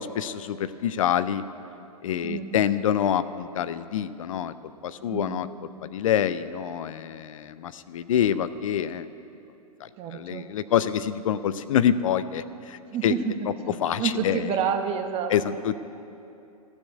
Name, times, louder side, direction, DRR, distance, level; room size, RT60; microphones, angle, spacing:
voice 1, 0.0-1.4 2.0-4.5 4.8-5.5 5.8-9.1 9.8-13.1 13.8-14.5 15.3-15.7, left 9 dB, 60° left, 14 dB, 0.5 m, -26 dB
voice 2, 2.2-2.6 5.0-5.4 10.0-10.5 12.9-15.6, right 7 dB, 30° right, 5 dB, 1.2 m, -29 dB
14.5 x 7.1 x 9.2 m, 2.8 s
figure-of-eight pair, 105°, 19 cm